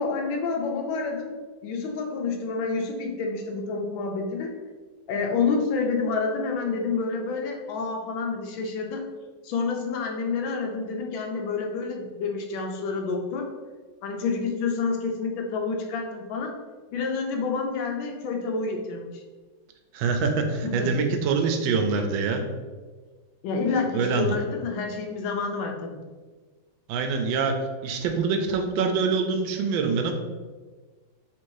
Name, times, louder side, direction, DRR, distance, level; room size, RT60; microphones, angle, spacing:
voice 1, 0.0-4.5 5.1-9.1 9.4-13.5 14.0-16.6 16.9-19.2 20.6-20.9 22.4-22.5 23.4-26.0, left 4 dB, 90° left, 2 dB, 1.4 m, -28 dB
voice 2, 19.9-22.4 23.9-24.4 26.9-30.1, right 4 dB, 85° right, 5 dB, 1.3 m, -25 dB
3.7 x 2.6 x 4.6 m, 1.4 s
omnidirectional pair, 2.1 m